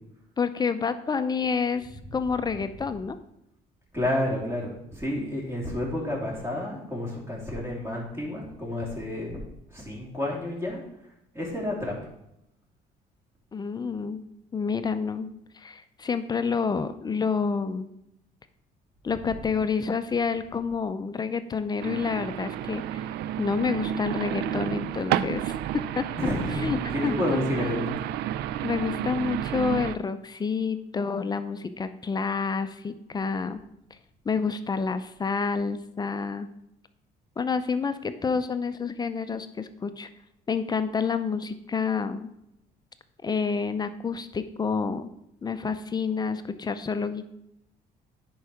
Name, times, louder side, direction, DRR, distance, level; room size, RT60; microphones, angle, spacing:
voice 1, 0.4-3.2 13.5-14.2 14.5-17.9 19.0-23.1 23.4-25.6 26.0-26.1 26.6-27.9 28.6-33.6 34.3-36.5 37.4-40.1 40.5-42.3 43.2-45.1 45.4-47.3, left 5 dB, 25° left, 10 dB, 0.5 m, -29 dB
voice 2, 3.9-9.4 9.7-10.8 11.3-11.9 26.1-27.9, left 1 dB, 15° right, -3 dB, 3.1 m, -30 dB
sound 1, 21.8-30.0, right 11 dB, 75° right, 0.4 m, -31 dB
10.5 x 4.7 x 4.9 m, 0.82 s
cardioid pair, 110°, 17 cm